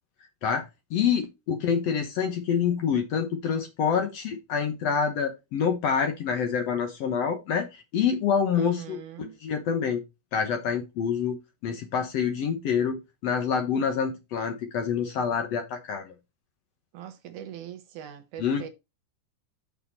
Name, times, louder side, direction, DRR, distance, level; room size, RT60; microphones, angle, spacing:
voice 1, 0.4-10.0 10.3-11.4 11.6-16.1 18.4-18.7, left 7 dB, 65° left, 1.8 m, -27 dB
voice 2, 8.5-9.3 16.9-18.7, right 10 dB, 75° right, 2.1 m, -41 dB
7.1 x 6.1 x 4.2 m
omnidirectional pair, 3.8 m